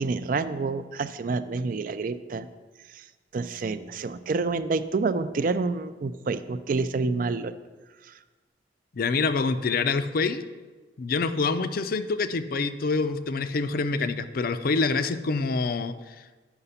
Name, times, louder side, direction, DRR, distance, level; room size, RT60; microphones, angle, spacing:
voice 1, 0.0-2.5 2.9-3.0 3.3-7.5 8.1-8.2, right 4 dB, 50° right, 12 dB, 0.4 m, -28 dB
voice 2, 8.9-10.4 11.0-16.1, left 4 dB, 55° left, 11 dB, 0.4 m, -26 dB
8.1 x 5.8 x 5.6 m, 1.3 s
head